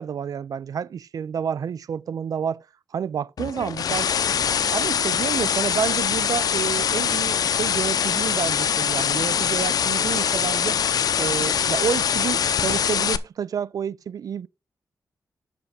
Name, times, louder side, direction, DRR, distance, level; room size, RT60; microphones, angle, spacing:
voice 1, 0.0-2.7 2.9-4.1 4.7-10.8 11.2-14.5, right 8 dB, 65° right, 0.4 m, -29 dB
sound 1, 3.4-13.2, left 8 dB, 75° left, 0.6 m, -23 dB
8.0 x 6.0 x 5.3 m
wide cardioid pair, 125°, 7 cm